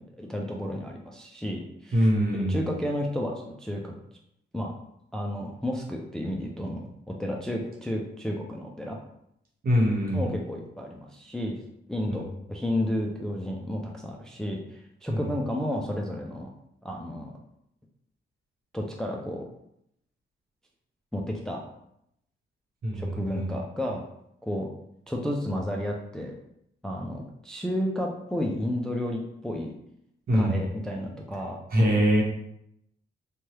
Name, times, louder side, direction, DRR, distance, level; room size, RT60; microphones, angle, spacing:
voice 1, 0.2-3.9 4.5-4.7 5.1-6.9 7.2-9.0 10.1-11.6 11.9-16.5 16.8-17.3 18.7-19.4 21.1-21.6 22.9-24.0 24.4-24.7 25.1-26.3 26.8-29.7 30.3-31.6, left 1 dB, 5° left, 0 dB, 0.3 m, -32 dB
voice 2, 1.9-2.7 9.6-10.3 12.1-12.2 15.1-15.2 22.8-23.5 30.3-30.6 31.7-32.2, equal, 50° right, -2 dB, 1.0 m, -23 dB
2.8 x 2.2 x 3.1 m, 0.76 s
cardioid pair, 100°, 20 cm